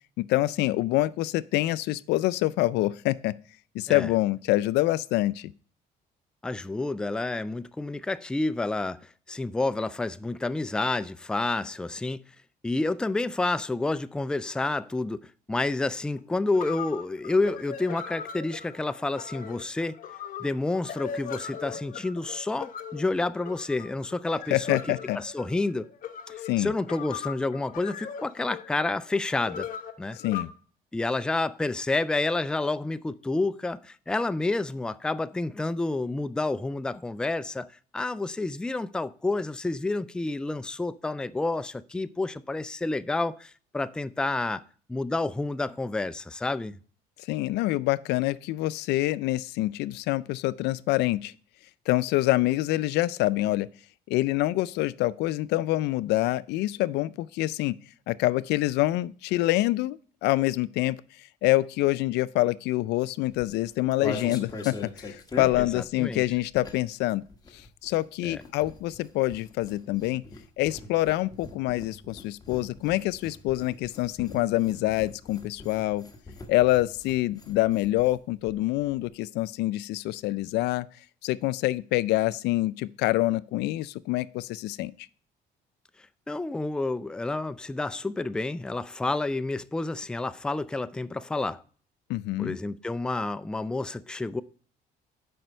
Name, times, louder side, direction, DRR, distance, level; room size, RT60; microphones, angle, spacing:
voice 1, 0.2-3.3 3.7-5.5 24.5-25.2 26.4-26.7 30.2-30.5 47.3-51.3 51.9-53.7 54.1-57.8 58.1-67.2 67.5-70.2 70.6-76.0 76.5-80.9 81.2-84.9 92.1-92.6, left 17 dB, 85° left, 0.4 m, -26 dB
voice 2, 6.4-9.0 9.3-12.2 12.6-19.9 20.4-25.9 26.3-29.7 30.0-30.2 30.9-37.7 37.9-44.6 44.9-46.7 65.6-66.2 68.2-68.4 86.3-91.6 92.4-94.4, left 2 dB, 5° left, 0.3 m, -29 dB
sound 1, 16.2-16.3 16.5-30.4, left 7 dB, 55° left, 1.0 m, -39 dB
sound 2, 63.3-67.0 67.3-78.2 78.5-78.6 78.8-79.1, left 2 dB, 25° left, 1.4 m, -42 dB
7.7 x 5.1 x 5.5 m
cardioid pair, 110°, 17 cm